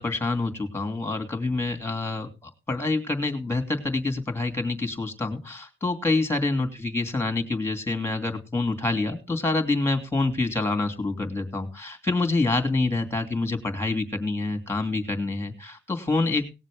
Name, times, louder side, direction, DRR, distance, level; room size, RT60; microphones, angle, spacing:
voice 1, 0.0-16.5, left 3 dB, 15° left, 7 dB, 2.8 m, -27 dB
19.5 x 7.3 x 3.7 m, 0.29 s
cardioid pair, 100°, 19 cm